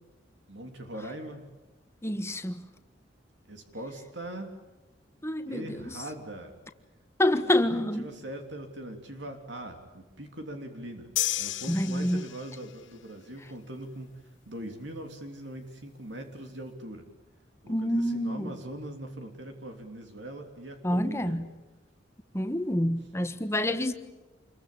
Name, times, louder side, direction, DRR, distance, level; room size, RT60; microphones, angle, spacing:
voice 1, 0.5-1.5 3.5-4.5 5.5-6.5 7.3-11.1 11.4-17.1 17.6-21.4, right 1 dB, 70° right, 3.2 m, -41 dB
voice 2, 2.0-2.6 5.2-5.9 7.2-8.1 11.7-12.3 17.7-18.6 20.8-21.5 22.3-23.9, left 1 dB, 15° left, 1.4 m, -27 dB
sound 1, 11.2-12.7, left 14 dB, 80° left, 1.0 m, -32 dB
28.0 x 23.0 x 8.7 m
head